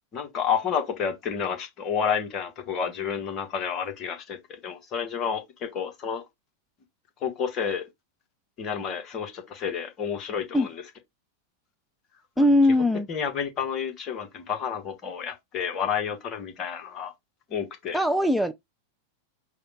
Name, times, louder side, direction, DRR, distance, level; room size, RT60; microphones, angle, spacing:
voice 1, 0.1-4.4 4.6-6.2 7.2-7.8 8.6-10.8 12.4-12.5 13.1-17.1 17.5-18.0, left 7 dB, 30° left, 1.1 m, -30 dB
voice 2, 12.4-13.1 17.9-18.5, left 1 dB, ahead, 0.3 m, -20 dB
4.9 x 2.2 x 4.0 m
figure-of-eight pair, 90°, 0 cm